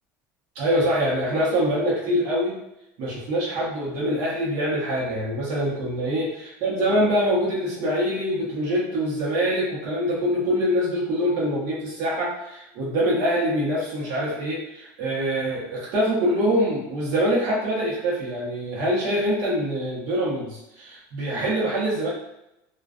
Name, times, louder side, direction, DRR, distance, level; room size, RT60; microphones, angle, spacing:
voice 1, 0.5-2.6 3.0-22.1, equal, 55° right, -6 dB, 0.9 m, -24 dB
2.3 x 2.2 x 2.4 m, 0.87 s
cardioid pair, 170°, 7 cm